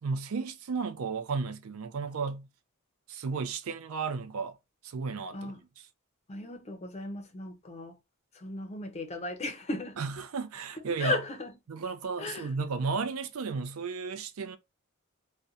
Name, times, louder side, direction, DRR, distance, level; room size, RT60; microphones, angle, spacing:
voice 1, 0.0-2.5 3.1-4.6 4.8-5.6 10.0-11.2 11.7-14.6, right 4 dB, 75° right, 0.4 m, -33 dB
voice 2, 6.3-7.9 8.3-10.0 11.0-11.5 12.2-12.5, left 2 dB, 30° left, 0.5 m, -35 dB
2.5 x 2.2 x 2.6 m
head